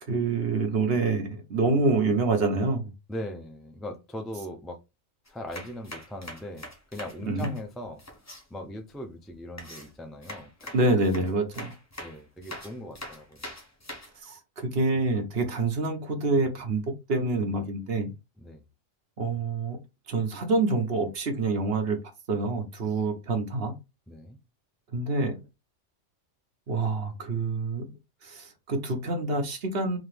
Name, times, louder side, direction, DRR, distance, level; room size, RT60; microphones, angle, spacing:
voice 1, 0.1-2.9 7.3-7.5 10.7-11.7 14.2-18.1 19.2-19.8 20.1-22.0 22.3-23.7 24.9-25.4 26.7-27.9 28.2-30.0, right 3 dB, 55° right, 1.1 m, -27 dB
voice 2, 3.1-4.8 5.3-8.0 8.5-10.7 12.0-13.5 18.4-18.6 24.1-24.4, equal, ahead, 0.3 m, -40 dB
sound 1, 5.3-8.4 9.6-14.1, left 1 dB, 15° left, 0.8 m, -43 dB
3.9 x 2.8 x 3.3 m
omnidirectional pair, 1.2 m